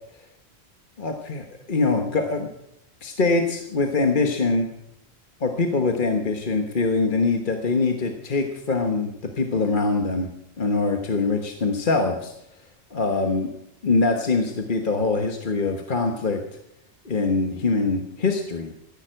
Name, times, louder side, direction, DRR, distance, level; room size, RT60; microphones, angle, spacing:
voice 1, 1.0-2.5 3.0-4.7 5.4-10.3 10.6-12.3 12.9-13.5 13.8-16.4 17.0-18.7, left 3 dB, 50° left, 4 dB, 1.4 m, -23 dB
15.0 x 11.5 x 7.7 m, 0.80 s
omnidirectional pair, 1.1 m